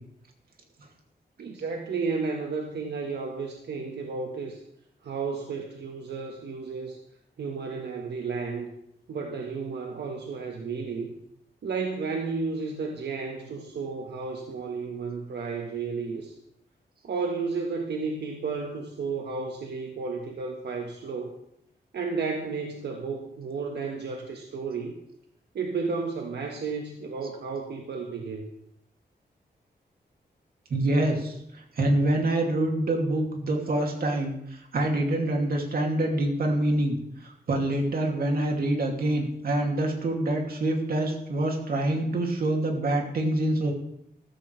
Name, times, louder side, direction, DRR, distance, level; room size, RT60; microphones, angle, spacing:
voice 1, 1.4-4.6 5.0-7.0 7.4-8.7 9.1-11.1 11.6-16.4 17.0-21.4 21.9-25.0 25.5-28.4, right 4 dB, 85° right, 2 dB, 1.5 m, -32 dB
voice 2, 30.7-43.7, right 1 dB, 60° right, 1 dB, 2.7 m, -26 dB
14.5 x 14.5 x 3.4 m, 0.75 s
wide cardioid pair, 165°, 17 cm